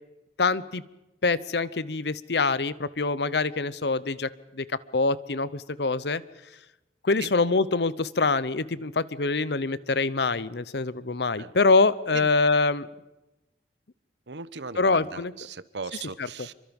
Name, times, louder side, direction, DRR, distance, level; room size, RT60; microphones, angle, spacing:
voice 1, 0.4-0.8 1.2-4.7 4.9-6.2 7.0-12.9 14.8-15.3 16.2-16.5, left 3 dB, 75° left, 17 dB, 0.8 m, -25 dB
voice 2, 14.3-16.5, right 5 dB, 85° right, 16 dB, 1.0 m, -38 dB
27.5 x 24.0 x 5.3 m, 1.0 s
head